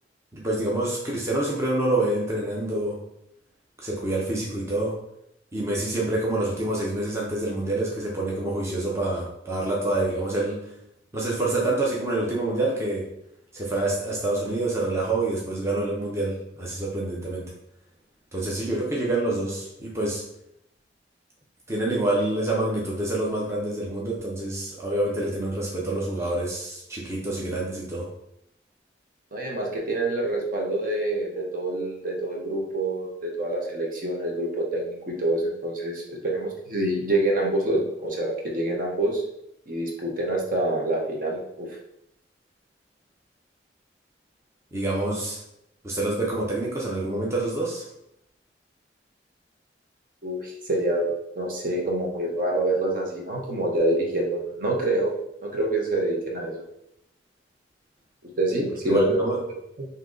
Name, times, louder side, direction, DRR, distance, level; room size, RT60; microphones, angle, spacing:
voice 1, 0.3-3.0 3.8-4.9 5.5-10.7 11.1-13.1 13.5-17.5 18.3-20.2 21.7-28.1 44.7-45.4 45.8-47.9 58.9-59.4, right 2 dB, 15° right, -4 dB, 0.6 m, -27 dB
voice 2, 29.3-39.2 39.7-41.7 50.2-55.1 55.4-56.6 58.2-59.2 59.8-59.9, right 1 dB, 50° right, -1 dB, 0.9 m, -26 dB
3.7 x 2.8 x 3.8 m, 0.78 s
head